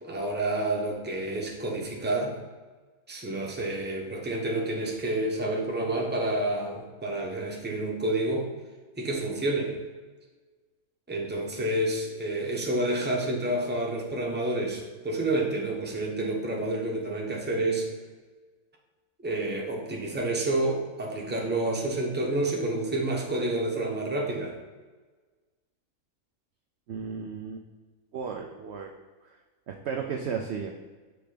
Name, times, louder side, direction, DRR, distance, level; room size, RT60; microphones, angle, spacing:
voice 1, 0.0-2.4 3.1-8.5 9.0-9.7 11.1-17.9 19.2-24.5, right 1 dB, 10° right, -1 dB, 0.8 m, -29 dB
voice 2, 26.9-27.7 28.1-28.9 29.2-29.4 29.7-30.7, right 6 dB, 65° right, 2 dB, 0.7 m, -34 dB
6.4 x 3.4 x 5.0 m, 1.4 s
omnidirectional pair, 1.5 m